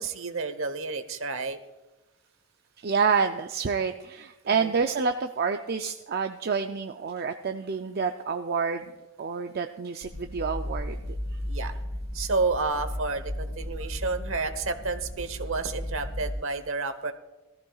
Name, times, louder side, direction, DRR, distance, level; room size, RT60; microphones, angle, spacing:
voice 1, 0.0-1.6 4.4-4.7 11.5-11.7 12.1-17.1, right 3 dB, 65° right, 9 dB, 1.0 m, -30 dB
voice 2, 2.8-11.0 11.3-11.4, right 5 dB, 45° right, 6 dB, 0.4 m, -28 dB
sound 1, 10.0-16.3, left 1 dB, 60° left, 3.4 m, -35 dB
19.0 x 14.0 x 2.4 m, 1.1 s
head